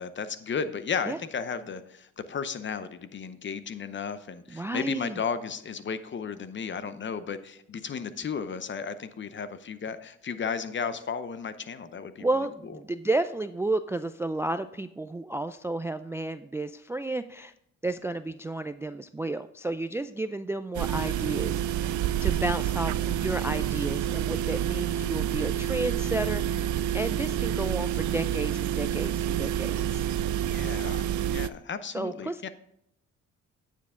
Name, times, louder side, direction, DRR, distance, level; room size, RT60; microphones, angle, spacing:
voice 1, 0.0-12.3 30.5-32.5, left 6 dB, 40° left, 13 dB, 0.7 m, -34 dB
voice 2, 4.5-5.2 12.2-17.5 17.8-26.7 26.9-30.0 31.9-32.5, right 2 dB, 10° right, 12 dB, 0.3 m, -32 dB
sound 1, 20.7-31.5, right 10 dB, 75° right, 0.5 m, -28 dB
9.4 x 7.4 x 3.7 m, 0.76 s
cardioid pair, 90°, 30 cm